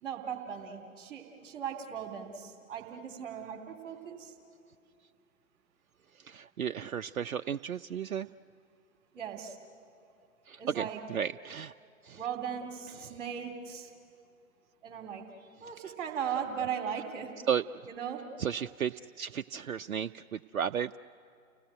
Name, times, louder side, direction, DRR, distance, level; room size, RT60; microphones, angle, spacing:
voice 1, 0.0-4.3 9.1-9.6 10.6-11.0 12.2-13.9 14.8-15.2 15.6-17.3 17.8-18.2, right 8 dB, 35° right, 2 dB, 2.9 m, -38 dB
voice 2, 6.2-8.3 10.5-11.7 12.0-12.2 17.5-17.6 18.4-21.0, right 8 dB, 75° right, 8 dB, 0.5 m, -34 dB
30.0 x 18.0 x 9.2 m, 2.5 s
figure-of-eight pair, 120°, 42 cm